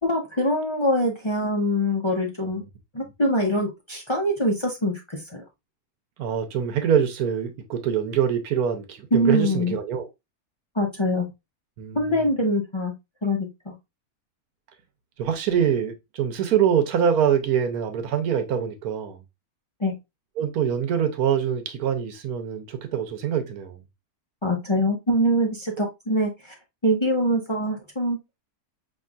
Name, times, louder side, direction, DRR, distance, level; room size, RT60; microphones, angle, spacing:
voice 1, 0.0-2.6 2.9-5.4 9.1-9.8 10.7-11.3 11.9-12.9 13.2-13.7 19.8-20.0 24.4-26.5 26.8-28.2, equal, 25° left, 0.6 m, -24 dB
voice 2, 6.2-10.1 11.8-12.2 15.2-19.2 20.4-23.8, right 8 dB, 85° right, 1.2 m, -24 dB
5.5 x 3.0 x 2.4 m
omnidirectional pair, 1.6 m